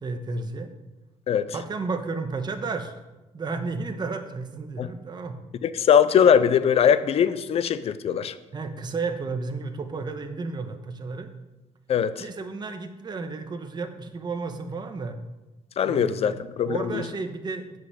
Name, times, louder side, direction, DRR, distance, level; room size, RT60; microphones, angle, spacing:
voice 1, 0.0-0.7 1.5-2.9 3.3-5.4 8.5-11.3 12.2-15.2 15.8-17.8, right 4 dB, 35° right, 6 dB, 1.2 m, -32 dB
voice 2, 5.6-8.4 11.9-12.2 15.8-17.0, left 8 dB, 50° left, 14 dB, 0.7 m, -21 dB
9.4 x 5.6 x 7.9 m, 1.1 s
cardioid pair, 105°, 13 cm